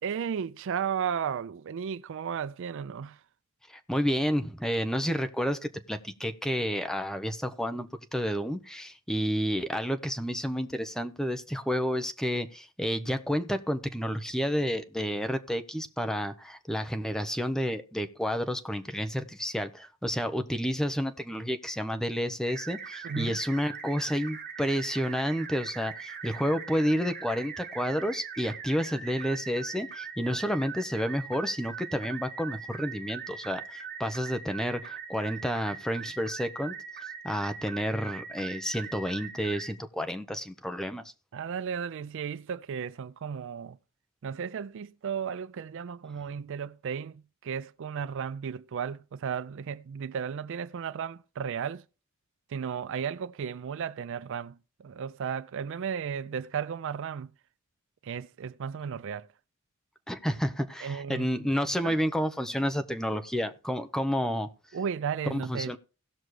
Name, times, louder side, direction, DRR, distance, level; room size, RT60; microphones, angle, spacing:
voice 1, 0.0-3.2 23.0-23.4 41.3-43.8 44.2-51.8 52.5-57.3 58.0-59.3 60.8-61.3 61.8-62.0 64.7-65.8, right 7 dB, 65° right, 0.4 m, -34 dB
voice 2, 3.7-36.7 37.2-41.0 60.1-64.5 65.3-65.8, equal, 5° left, 0.8 m, -30 dB
sound 1, 22.5-39.7, right 6 dB, 45° right, 1.5 m, -41 dB
17.5 x 6.2 x 3.2 m
head